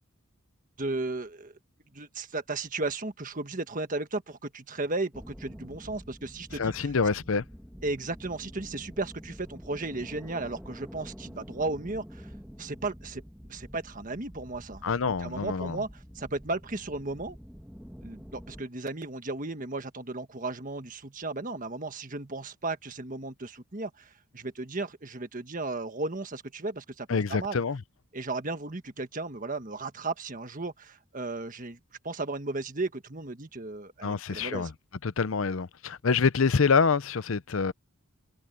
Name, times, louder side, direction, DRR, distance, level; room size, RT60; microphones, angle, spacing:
voice 1, 0.8-1.5 1.9-6.9 7.8-12.3 12.6-13.2 13.5-17.4 18.0-27.6 28.1-31.8 32.0-34.7, right 2 dB, 40° right, 1.5 m, -35 dB
sound 1, 5.1-18.6, equal, 5° right, 1.8 m, -47 dB
voice 2, 6.5-7.4 14.8-15.8 27.1-27.8 34.0-34.7 35.0-37.7, left 5 dB, 70° left, 0.7 m, -26 dB
head